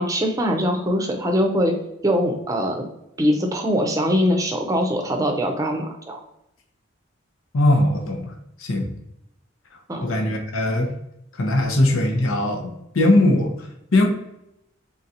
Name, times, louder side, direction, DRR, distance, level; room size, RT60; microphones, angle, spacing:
voice 1, 0.0-1.7 2.0-2.9 3.2-6.2 9.9-10.0, equal, 15° right, 3 dB, 0.6 m, -22 dB
voice 2, 7.5-8.3 8.6-8.9 10.0-10.9 11.3-14.1, left 1 dB, 85° left, 2 dB, 0.8 m, -20 dB
3.9 x 3.7 x 2.8 m, 0.83 s
head